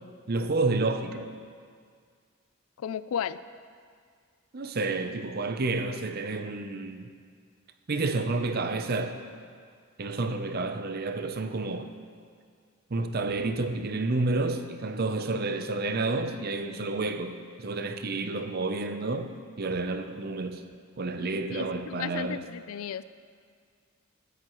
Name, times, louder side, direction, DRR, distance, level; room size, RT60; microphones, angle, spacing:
voice 1, 0.3-1.3 4.5-7.1 7.9-9.2 10.0-11.9 12.9-20.6 21.0-22.5, right 3 dB, 45° right, 0.6 m, -30 dB
voice 2, 2.8-3.4 21.2-23.0, left 8 dB, 75° left, 0.3 m, -34 dB
15.0 x 11.0 x 3.1 m
head